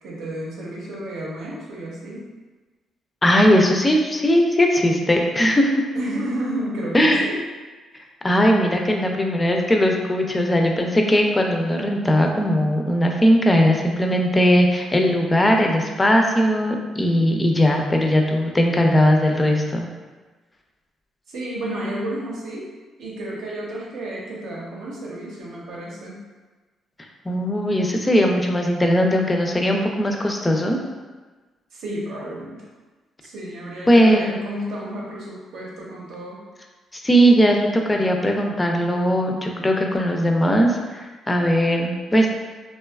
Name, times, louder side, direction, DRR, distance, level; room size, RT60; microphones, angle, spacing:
voice 1, 0.0-2.3 5.9-7.4 21.3-22.7 23.0-26.2 31.7-32.6 33.2-36.4, right 1 dB, 80° right, -5 dB, 0.7 m, -31 dB
voice 2, 3.2-5.8 6.9-7.2 8.2-19.9 27.3-30.8 33.9-34.4 37.0-42.3, equal, 20° left, 2 dB, 0.3 m, -19 dB
2.6 x 2.2 x 2.2 m, 1.3 s
cardioid pair, 90°, 0 cm